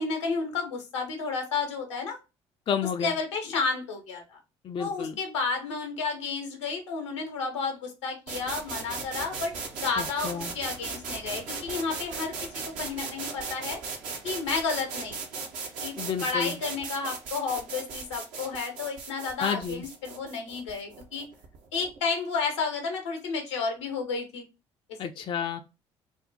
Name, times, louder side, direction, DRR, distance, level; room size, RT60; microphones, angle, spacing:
voice 1, 0.0-2.2 3.0-4.4 4.8-9.5 9.8-13.8 14.2-15.5 15.8-21.3 21.7-24.5, left 4 dB, 80° left, 0.7 m, -31 dB
voice 2, 2.7-3.2 4.6-5.2 10.0-10.5 16.0-16.6 19.4-19.8 25.0-25.6, left 7 dB, 35° left, 0.4 m, -31 dB
sound 1, 8.3-22.0, right 4 dB, 60° right, 0.7 m, -38 dB
2.6 x 2.1 x 3.8 m
figure-of-eight pair, 50°, 15 cm